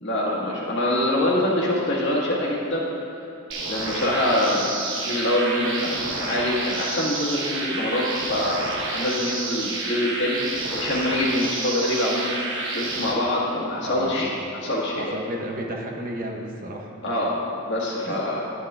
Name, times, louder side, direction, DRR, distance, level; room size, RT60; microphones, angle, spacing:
voice 1, 0.0-2.9 3.7-4.7 5.0-12.4 12.7-15.2 17.0-18.4, left 1 dB, 55° left, -5 dB, 1.6 m, -25 dB
sound 1, 3.5-13.1, right 2 dB, 55° right, 1.1 m, -29 dB
voice 2, 13.8-14.2 15.0-16.9 18.0-18.2, right 1 dB, 40° right, 1 dB, 0.7 m, -32 dB
11.5 x 8.0 x 2.4 m, 3.0 s
head